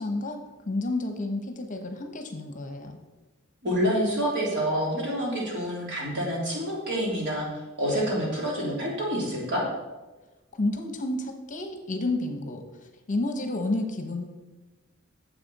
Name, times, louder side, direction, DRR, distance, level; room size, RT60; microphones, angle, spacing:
voice 1, 0.0-3.0 10.5-12.6 13.1-14.3, left 2 dB, 40° left, 5 dB, 0.9 m, -30 dB
voice 2, 3.6-9.6, equal, 60° right, -4 dB, 3.1 m, -27 dB
9.6 x 7.2 x 4.1 m, 1.1 s
head